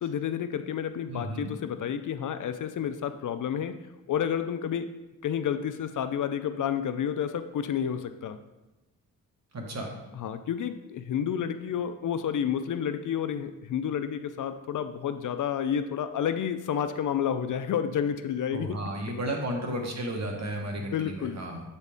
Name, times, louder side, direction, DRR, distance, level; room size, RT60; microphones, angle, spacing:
voice 1, 0.0-3.8 4.1-4.9 5.2-8.4 10.1-18.8 20.9-21.4, left 8 dB, 60° left, 10 dB, 0.5 m, -30 dB
voice 2, 1.1-1.5 9.5-9.9 18.5-21.6, right 1 dB, 45° right, 1 dB, 1.3 m, -33 dB
8.1 x 4.1 x 3.5 m, 1.0 s
cardioid pair, 80°, 36 cm